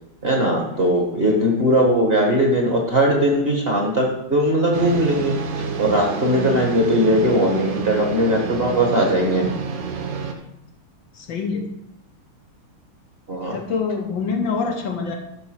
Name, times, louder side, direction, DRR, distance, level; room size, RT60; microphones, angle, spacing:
voice 1, 0.2-5.3 5.8-9.5 13.3-13.6, equal, 30° right, 0 dB, 1.5 m, -19 dB
sound 1, 4.7-10.3, right 5 dB, 80° right, 1.9 m, -29 dB
voice 2, 11.1-11.7 13.5-15.2, left 5 dB, 65° left, 3 dB, 1.6 m, -25 dB
11.5 x 4.2 x 6.5 m, 0.80 s
omnidirectional pair, 2.4 m